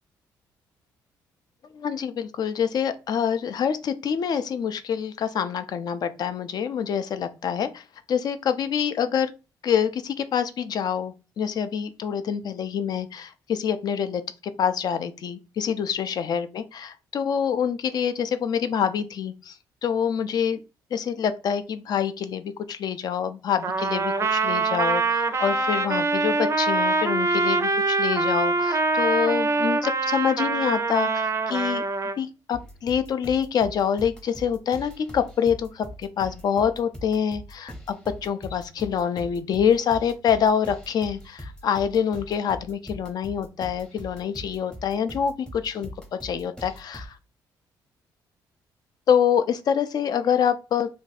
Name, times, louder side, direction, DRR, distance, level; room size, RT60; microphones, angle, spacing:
voice 1, 1.8-9.3 9.6-19.6 19.8-20.6 20.9-31.8 32.2-47.2 49.1-50.9, left 8 dB, 55° left, 0.4 m, -26 dB
Trumpet, 23.6-32.2, right 3 dB, 35° right, 0.4 m, -24 dB
sound 1, 32.5-47.1, equal, 10° left, 0.7 m, -42 dB
2.6 x 2.3 x 4.0 m
cardioid pair, 90°, 8 cm